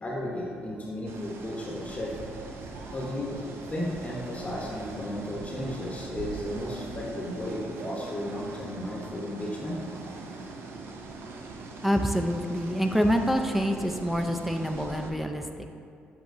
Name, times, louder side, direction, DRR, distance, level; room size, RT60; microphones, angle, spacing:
voice 1, 0.0-2.1 2.9-9.8, left 1 dB, 30° left, -3 dB, 0.8 m, -34 dB
sound 1, 1.0-15.1, right 3 dB, 65° right, 0.5 m, -41 dB
voice 2, 11.8-15.7, equal, 5° right, 5 dB, 0.3 m, -27 dB
7.3 x 2.8 x 2.5 m, 2.4 s
supercardioid pair, 55°, 5 cm